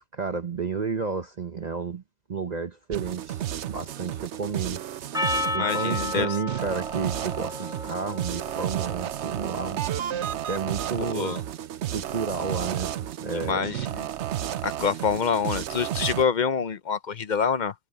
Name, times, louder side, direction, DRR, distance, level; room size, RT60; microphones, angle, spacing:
voice 1, 0.1-2.0 2.3-4.8 5.5-9.8 10.5-11.4 11.9-12.9 13.2-13.8, right 5 dB, 40° right, 0.9 m, -31 dB
sound 1, 2.9-16.3, right 11 dB, 85° right, 1.0 m, -32 dB
Percussion, 5.1-9.7, left 1 dB, 5° right, 1.0 m, -33 dB
voice 2, 5.6-6.3 11.0-11.4 13.5-14.0 14.6-17.7, left 6 dB, 50° left, 0.7 m, -26 dB
omnidirectional pair, 1.1 m